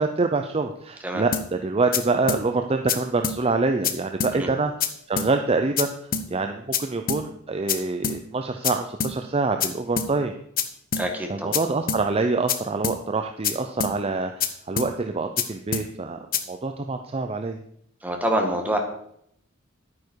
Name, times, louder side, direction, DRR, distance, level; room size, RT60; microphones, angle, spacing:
voice 1, 0.0-5.9 6.3-10.3 11.3-17.6, right 3 dB, 30° right, 6 dB, 0.6 m, -26 dB
sound 1, 1.3-1.5 1.9-2.0 2.3-2.4 2.9-3.0 3.2-3.4 3.8-3.9 4.2-4.3 4.8-4.9 5.2-5.3 5.8-5.9 6.1-6.3 6.7-6.8 7.1-7.2 7.7-7.8 8.0-8.2 8.6-8.7 9.0-9.1 9.6-9.7 10.0-10.1 10.6-10.7 10.9-11.1 11.5-11.6 11.9-12.0 12.5-12.6 12.8-13.0 13.4-13.5 13.8-13.9 14.4-14.5 14.8-14.9 15.4-15.5 15.7-15.9 16.3-16.4, left 7 dB, 45° left, 0.9 m, -25 dB
voice 2, 11.0-11.6 18.0-18.8, right 1 dB, 10° right, 2 dB, 1.9 m, -26 dB
10.5 x 9.5 x 4.7 m, 0.70 s
head